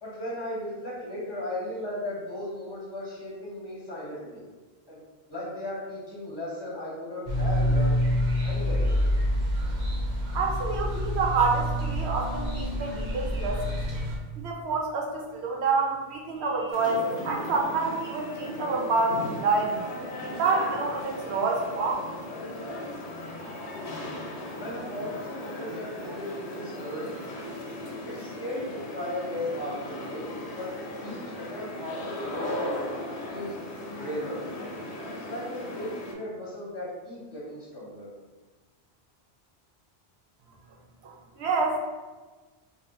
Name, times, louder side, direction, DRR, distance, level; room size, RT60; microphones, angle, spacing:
voice 1, 0.0-4.4 4.9-5.0 5.3-8.0 8.4-9.1 24.6-27.1 28.0-30.7 31.0-32.8 33.3-33.6 34.0-34.4 35.1-38.1, left 1 dB, 25° left, -7 dB, 1.0 m, -36 dB
sound 1, 7.3-14.2, equal, 50° right, 0.7 m, -27 dB
voice 2, 10.3-13.7 14.4-19.8 20.4-21.9 41.0-41.8, right 4 dB, 80° right, 0 dB, 0.9 m, -27 dB
sound 2, 16.7-36.1, left 1 dB, 90° left, 0.9 m, -37 dB
2.7 x 2.4 x 3.5 m, 1.3 s
omnidirectional pair, 1.1 m